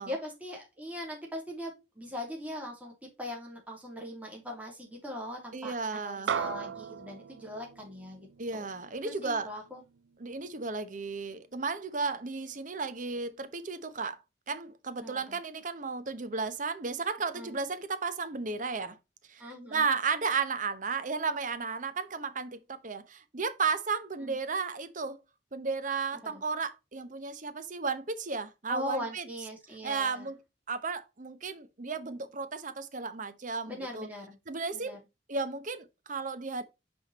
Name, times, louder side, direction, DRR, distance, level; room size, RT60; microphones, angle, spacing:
voice 1, 0.0-2.9 3.2-8.3 8.5-8.6 9.0-9.8 15.0-15.4 17.3-17.6 19.4-19.8 24.2-24.4 26.2-26.4 28.7-30.3 33.7-34.4 34.7-35.0, left 1 dB, 10° right, 2.7 m, -40 dB
voice 2, 5.5-6.3 8.4-9.5 10.2-14.2 14.5-19.0 19.3-19.4 19.7-25.2 25.5-29.3 29.8-30.4 30.7-34.1 34.5-35.0 35.3-36.6, right 4 dB, 45° right, 0.8 m, -34 dB
sound 1, 6.3-10.9, right 7 dB, 85° right, 0.4 m, -38 dB
6.0 x 4.9 x 4.0 m
head